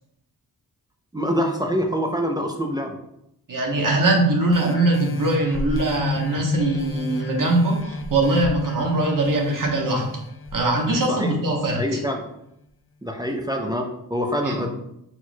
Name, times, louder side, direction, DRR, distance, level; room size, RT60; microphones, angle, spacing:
voice 1, 1.1-3.0 11.1-11.4 11.8-12.2 13.0-14.7, equal, 10° right, 2 dB, 0.6 m, -25 dB
voice 2, 3.5-10.1 10.5-11.8 14.4-14.6, right 2 dB, 50° right, 0 dB, 1.2 m, -21 dB
sound 1, 4.5-11.7 12.2-12.3, left 1 dB, 30° left, 0.6 m, -31 dB
4.4 x 4.3 x 2.3 m, 0.78 s
cardioid pair, 50°, 41 cm